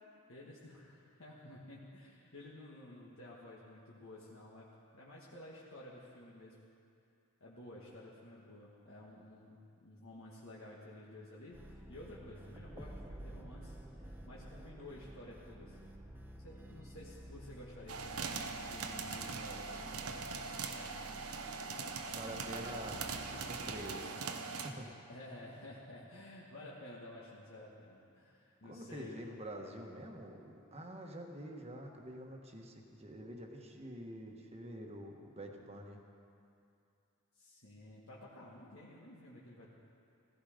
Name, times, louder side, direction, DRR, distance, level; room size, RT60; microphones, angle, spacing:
voice 1, 0.3-4.7 4.9-6.7 7.4-15.9 16.4-20.1 22.6-22.8 25.1-29.3 37.3-39.7, left 1 dB, 65° left, -5 dB, 1.7 m, -52 dB
sound 1, 11.5-24.0, right 1 dB, 10° right, 0.8 m, -52 dB
sound 2, 17.9-24.7, right 4 dB, 80° right, 1.0 m, -41 dB
voice 2, 22.1-24.9 28.6-36.0, right 1 dB, 30° right, 2 dB, 1.4 m, -47 dB
15.5 x 15.0 x 5.1 m, 2.6 s
head